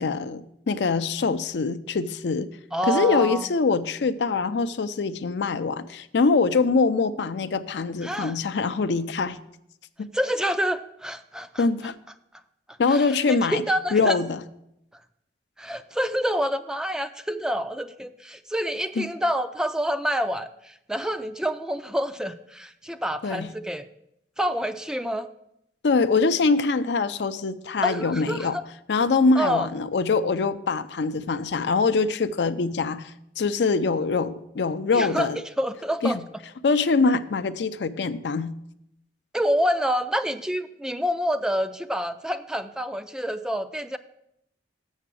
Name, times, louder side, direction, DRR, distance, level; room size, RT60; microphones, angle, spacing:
voice 1, 0.0-2.5 2.9-9.4 10.0-10.1 11.6-12.0 12.8-13.6 13.9-14.4 19.0-19.1 23.2-23.5 25.8-28.6 28.9-35.4 36.0-36.2 36.6-38.6, left 4 dB, 75° left, 12 dB, 0.5 m, -23 dB
voice 2, 2.7-3.5 8.0-8.4 10.1-11.7 12.9-14.2 15.6-23.9 24.4-25.3 27.8-28.6 29.4-29.7 34.9-36.2 39.3-44.0, equal, 5° right, 10 dB, 0.3 m, -27 dB
7.3 x 6.7 x 6.2 m, 0.79 s
head